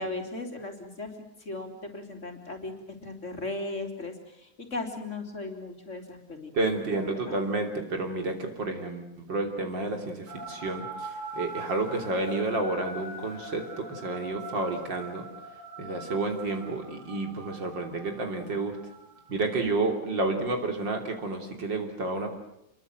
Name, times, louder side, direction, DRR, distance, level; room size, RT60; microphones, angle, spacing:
voice 1, 0.0-2.7 3.0-6.5 6.9-7.5, left 2 dB, 40° left, 4 dB, 3.6 m, -37 dB
voice 2, 6.5-10.9 11.3-13.6 13.9-15.3 15.8-18.8 19.3-22.3, right 2 dB, 75° right, 4 dB, 3.9 m, -30 dB
sound 1, 10.3-19.7, right 2 dB, 25° right, 6.5 m, -42 dB
28.0 x 22.5 x 7.8 m, 0.81 s
omnidirectional pair, 2.0 m